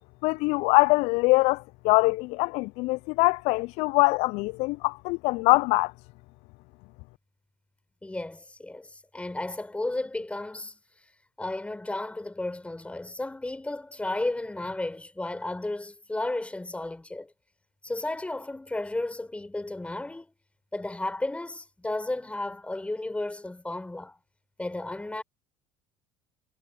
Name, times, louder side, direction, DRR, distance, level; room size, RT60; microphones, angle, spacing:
voice 1, 0.2-5.9, left 25 dB, 60° left, 0.4 m, -23 dB
voice 2, 8.0-10.8 11.4-17.3 17.8-20.3 20.7-24.2 24.6-25.2, left 2 dB, 10° left, 4.6 m, -33 dB
hypercardioid pair, 70°, 12 cm